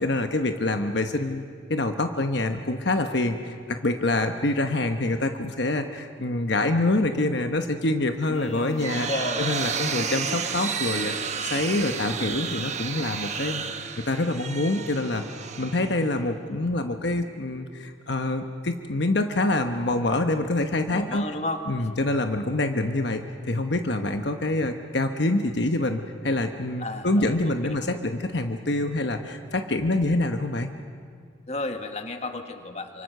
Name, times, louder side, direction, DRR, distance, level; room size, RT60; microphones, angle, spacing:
voice 1, 0.0-9.1 9.4-11.1 11.4-13.6 14.1-15.2 15.6-21.3 21.7-30.7, left 2 dB, 65° left, 6 dB, 1.1 m, -26 dB
voice 2, 8.3-9.4 20.9-21.9 26.8-27.8 31.5-33.0, left 2 dB, 35° left, 6 dB, 1.6 m, -33 dB
sound 1, 8.4-16.3, right 6 dB, 35° right, 1.3 m, -31 dB
28.0 x 25.5 x 6.7 m, 2.2 s
head